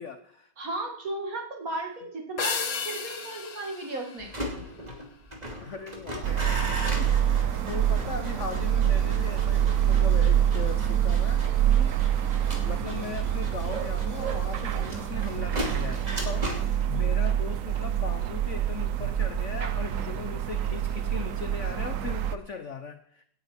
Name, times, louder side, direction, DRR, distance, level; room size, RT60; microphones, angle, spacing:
voice 1, 0.0-0.5 5.6-12.2 12.6-23.2, left 6 dB, 65° left, 9 dB, 0.7 m, -39 dB
voice 2, 0.6-4.3, right 2 dB, 40° right, 1 dB, 2.4 m, -35 dB
sound 1, 2.4-5.0, left 6 dB, 45° left, 1.4 m, -34 dB
sound 2, 4.2-21.2 21.5-21.9, equal, 20° right, 2.6 m, -38 dB
sound 3, 6.2-22.4, right 10 dB, 75° right, 0.7 m, -26 dB
17.5 x 9.3 x 4.4 m, 0.68 s
omnidirectional pair, 2.3 m